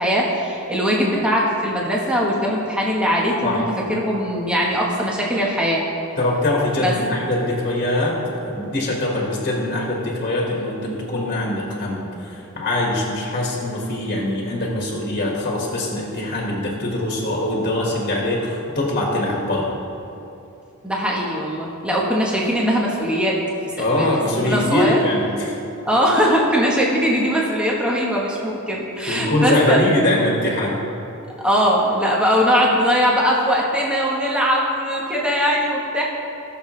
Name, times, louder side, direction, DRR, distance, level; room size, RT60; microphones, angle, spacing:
voice 1, 0.0-5.8 6.8-6.9 20.8-23.4 23.7-25.0 25.8-29.8 31.4-36.0, equal, 5° right, -3 dB, 1.2 m, -20 dB
voice 2, 6.2-8.2 8.4-19.8 23.8-25.6 29.1-30.8, left 1 dB, 40° left, -2 dB, 1.7 m, -22 dB
18.5 x 6.8 x 3.2 m, 2.8 s
head